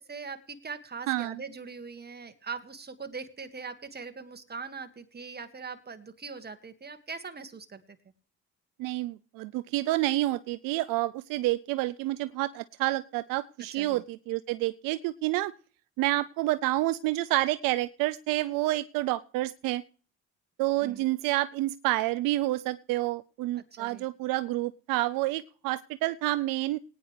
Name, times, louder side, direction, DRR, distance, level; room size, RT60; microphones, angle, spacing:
voice 1, 0.1-7.8 13.7-14.0 20.8-21.0 23.7-24.1, right 5 dB, 30° right, 8 dB, 2.0 m, -41 dB
voice 2, 1.1-1.4 8.8-15.5 16.0-19.8 20.6-26.8, right 17 dB, 75° right, 15 dB, 0.5 m, -29 dB
19.5 x 9.8 x 3.3 m, 0.41 s
supercardioid pair, 65°, 33 cm